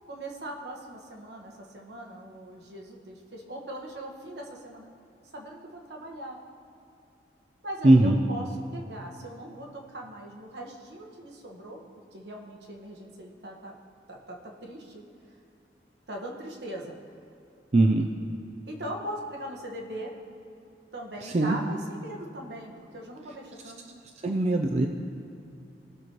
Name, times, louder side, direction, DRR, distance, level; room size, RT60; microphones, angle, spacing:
voice 1, 0.1-4.9 5.3-6.4 7.6-11.8 12.1-13.8 14.1-15.0 16.1-17.0 18.7-20.1 20.9-24.0, right 1 dB, 75° right, 0 dB, 1.3 m, -40 dB
voice 2, 7.8-8.2 17.7-18.1 21.2-21.6 24.2-24.9, right 2 dB, 40° right, 3 dB, 0.4 m, -20 dB
18.0 x 6.1 x 3.0 m, 2.8 s
head